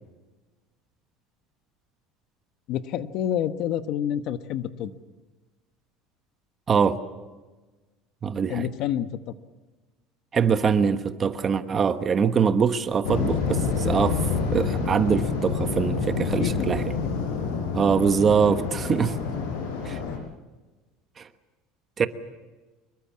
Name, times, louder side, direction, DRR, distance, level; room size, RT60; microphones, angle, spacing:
voice 1, 2.7-4.9 8.5-9.3 16.4-16.7 19.3-20.2, left 10 dB, 50° left, 10 dB, 1.2 m, -29 dB
voice 2, 6.7-7.0 8.2-8.7 10.3-14.2 14.5-16.8 17.7-19.2 19.8-20.0 21.2-21.3 22.0-22.1, right 6 dB, 25° right, 9 dB, 1.2 m, -23 dB
Waves surf, 13.0-20.2, left 5 dB, 70° left, 7.3 m, -27 dB
26.0 x 23.0 x 7.4 m, 1.2 s
cardioid pair, 165°, 0 cm